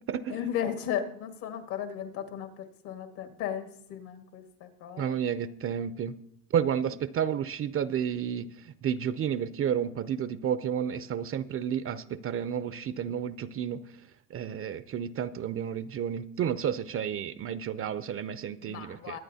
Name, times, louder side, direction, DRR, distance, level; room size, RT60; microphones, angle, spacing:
voice 1, 0.3-5.1 18.6-19.2, left 9 dB, 65° left, 5 dB, 1.8 m, -35 dB
voice 2, 5.0-6.1 6.5-13.8 14.3-19.2, right 8 dB, 35° right, 15 dB, 0.5 m, -31 dB
22.5 x 8.9 x 2.8 m, 0.77 s
supercardioid pair, 100°, 40 cm